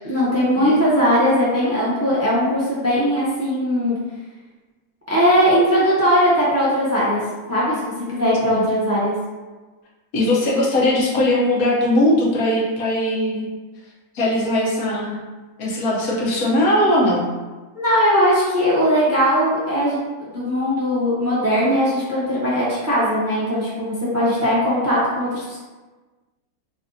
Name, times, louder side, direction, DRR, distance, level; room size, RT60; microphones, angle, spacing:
voice 1, 0.1-4.0 5.1-7.2 7.5-9.1 17.7-25.6, equal, 15° right, -8 dB, 0.6 m, -19 dB
voice 2, 10.1-13.5 14.1-15.2 15.6-17.2, left 1 dB, 70° left, -4 dB, 1.2 m, -19 dB
3.3 x 2.7 x 3.8 m, 1.3 s
omnidirectional pair, 1.6 m